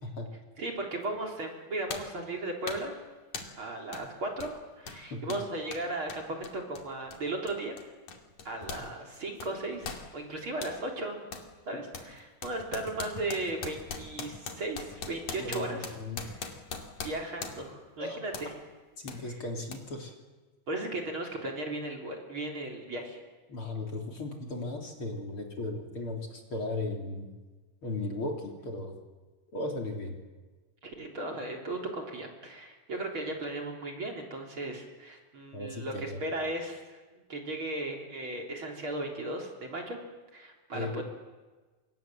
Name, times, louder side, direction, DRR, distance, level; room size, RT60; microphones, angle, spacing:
voice 1, 0.6-3.0 3.6-7.8 8.4-11.2 11.7-15.8 16.2-16.4 17.0-18.6 20.7-23.2 30.8-37.0 37.3-40.0 40.3-41.0, right 2 dB, 40° right, 1 dB, 4.3 m, -36 dB
sound 1, 1.0-1.2 1.9-2.2 2.7-2.9 3.3-3.6 3.9-4.1 4.4-8.9 9.1-10.8 11.3-11.5 11.9-17.8 18.3-18.5 19.1-19.2 19.7-19.8, left 5 dB, 65° left, 3.9 m, -41 dB
voice 2, 15.4-16.2 18.0-18.5 19.0-20.2 23.5-27.3 27.8-28.9 29.5-30.2 35.5-36.2 40.7-41.0, left 2 dB, 40° left, 2 dB, 3.9 m, -36 dB
29.5 x 26.0 x 7.7 m, 1.3 s
omnidirectional pair, 3.7 m